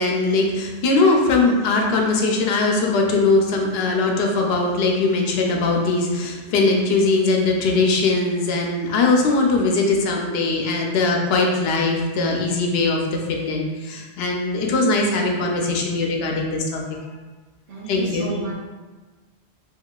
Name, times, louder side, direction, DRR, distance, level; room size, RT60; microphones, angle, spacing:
voice 1, 0.0-16.8 17.9-18.4, left 3 dB, 70° left, 1 dB, 0.8 m, -20 dB
voice 2, 17.7-18.5, right 3 dB, 65° right, -4 dB, 1.0 m, -30 dB
3.6 x 2.9 x 2.3 m, 1.3 s
omnidirectional pair, 1.1 m